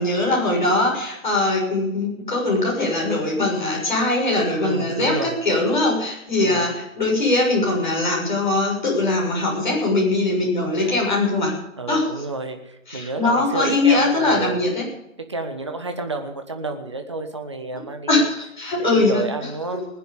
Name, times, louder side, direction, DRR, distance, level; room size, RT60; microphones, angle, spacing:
voice 1, 0.0-11.6 11.9-12.1 12.9-14.8 17.7-19.3, left 2 dB, 35° left, -3 dB, 6.7 m, -21 dB
voice 2, 4.6-5.4 6.4-6.7 10.8-11.0 11.8-14.6 15.3-18.3 18.8-19.8, right 3 dB, 20° right, 5 dB, 1.3 m, -30 dB
20.5 x 9.2 x 7.0 m, 0.82 s
figure-of-eight pair, 165°, 41 cm